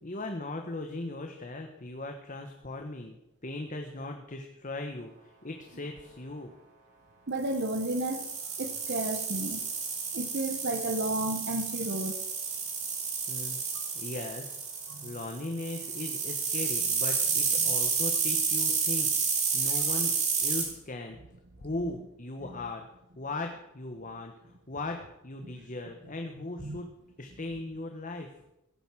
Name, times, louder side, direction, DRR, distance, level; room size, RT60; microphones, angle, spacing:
voice 1, 0.0-3.2 3.4-6.5 13.3-13.6 13.9-14.6 15.0-21.2 21.6-22.9 23.2-26.9 27.2-28.3, left 2 dB, 35° left, 4 dB, 1.2 m, -38 dB
voice 2, 7.3-8.3 8.6-9.6 10.1-12.2 13.7-13.8 14.9-15.2 17.6-17.7 22.4-22.6 25.4-25.6 26.6-26.8, right 1 dB, 50° right, 7 dB, 1.2 m, -33 dB
sound 1, 7.5-20.6, right 5 dB, 35° right, 3.6 m, -30 dB
16.5 x 9.2 x 6.2 m, 0.85 s
head